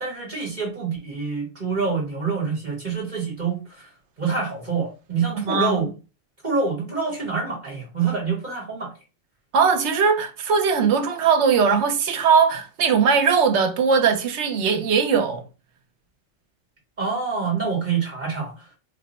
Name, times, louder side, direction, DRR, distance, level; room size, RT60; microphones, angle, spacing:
voice 1, 0.0-3.9 4.2-5.9 6.4-8.9 17.0-18.7, right 5 dB, 40° right, 1.1 m, -26 dB
voice 2, 5.4-5.8 9.5-15.4, right 6 dB, 70° right, 0.9 m, -20 dB
3.2 x 2.1 x 4.0 m
omnidirectional pair, 1.3 m